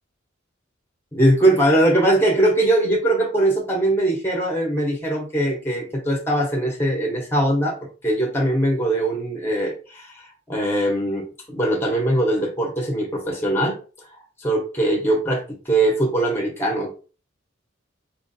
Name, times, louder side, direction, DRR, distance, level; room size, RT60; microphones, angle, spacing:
voice 1, 1.1-7.8 8.0-13.8 14.4-16.9, right 1 dB, 10° left, 0 dB, 0.9 m, -21 dB
4.3 x 2.5 x 2.6 m, 0.35 s
head